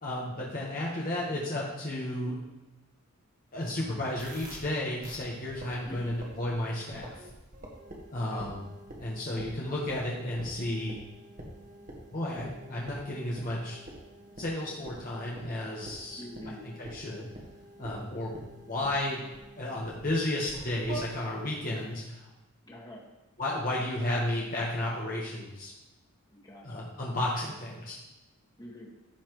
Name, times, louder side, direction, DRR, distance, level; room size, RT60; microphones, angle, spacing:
voice 1, 0.0-2.4 3.5-7.1 8.1-8.7 9.0-11.0 12.1-13.8 14.4-17.3 17.8-19.2 19.6-22.2 23.4-25.7 26.6-28.0, left 1 dB, 40° left, -4 dB, 1.3 m, -33 dB
sound 1, 4.2-4.6 5.0-5.2 5.5-6.5 6.9-20.0 20.5-21.0, right 1 dB, 40° right, 1.6 m, -47 dB
voice 2, 5.8-6.2 8.1-8.4 16.2-16.6 22.7-23.1 26.3-26.7 28.6-28.9, left 1 dB, 20° left, -4 dB, 1.9 m, -45 dB
15.0 x 5.7 x 3.2 m, 1.0 s
head